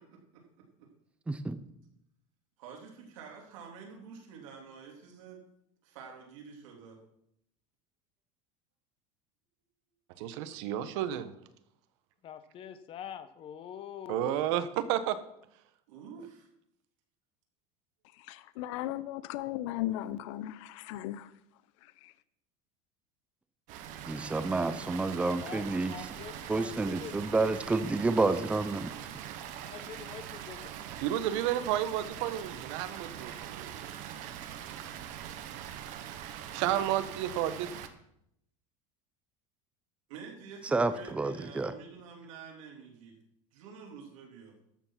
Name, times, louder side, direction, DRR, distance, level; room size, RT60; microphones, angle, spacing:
voice 1, 0.3-0.9 2.6-5.4 5.8-7.0 15.9-16.5 40.1-43.2 43.5-44.5, right 6 dB, 85° right, 3.2 m, -48 dB
voice 2, 1.3-1.6 24.1-25.9 26.5-28.9 40.7-41.7, right 3 dB, 5° right, 0.6 m, -29 dB
voice 3, 10.2-11.3 14.1-15.2 31.0-33.7 36.5-37.7, right 11 dB, 70° right, 1.1 m, -31 dB
voice 4, 12.2-14.6 25.4-27.4 29.7-30.6, left 9 dB, 35° left, 1.0 m, -45 dB
voice 5, 18.2-21.3 21.8-22.1, left 14 dB, 75° left, 0.7 m, -37 dB
Water, 23.7-37.9, right 10 dB, 55° right, 1.1 m, -43 dB
13.0 x 7.1 x 5.8 m
supercardioid pair, 150°, 16 cm